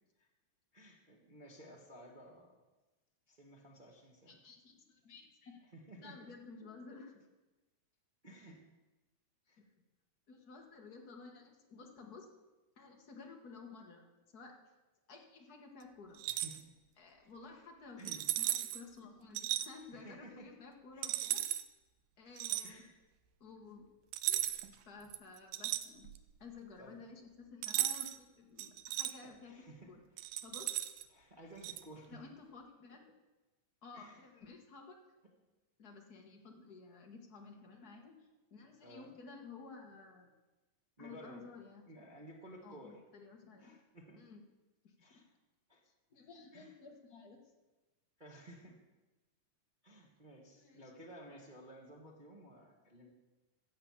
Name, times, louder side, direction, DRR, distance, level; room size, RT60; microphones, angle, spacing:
voice 1, 0.7-2.5 3.3-4.4 5.7-6.3 8.2-8.6 9.5-9.6 16.3-16.7 17.2-17.3 18.0-18.2 19.9-20.5 20.9-21.4 22.6-22.9 26.8-27.0 29.2-29.9 31.1-32.2 33.9-34.2 38.8-39.1 41.0-41.4 41.9-43.0 43.6-44.2 45.0-45.3 45.7-45.8 46.5-46.7 48.2-48.8 49.8-53.1, right 1 dB, 40° right, -1 dB, 0.6 m, -54 dB
voice 2, 4.3-5.6 6.0-7.3 9.6-9.7 10.3-12.3 12.8-14.0 14.3-14.6 15.1-16.2 17.0-21.4 22.2-22.8 23.4-23.9 24.8-26.1 26.4-30.0 30.4-30.7 32.1-33.1 33.8-35.0 35.8-40.3 41.0-41.8 42.6-43.8 44.1-44.4 44.8-45.2 46.1-47.4 50.5-50.9, left 4 dB, 40° left, 2 dB, 1.4 m, -53 dB
sound 1, 16.1-16.6 18.0-18.8 19.3-19.7 21.0-21.6 22.4-22.7 24.1-24.7 25.1-26.3 27.6-28.2 28.6-29.1 30.2-31.0 31.6-31.8, right 14 dB, 85° right, 2.3 m, -36 dB
14.0 x 7.9 x 7.2 m, 1.1 s
omnidirectional pair, 3.8 m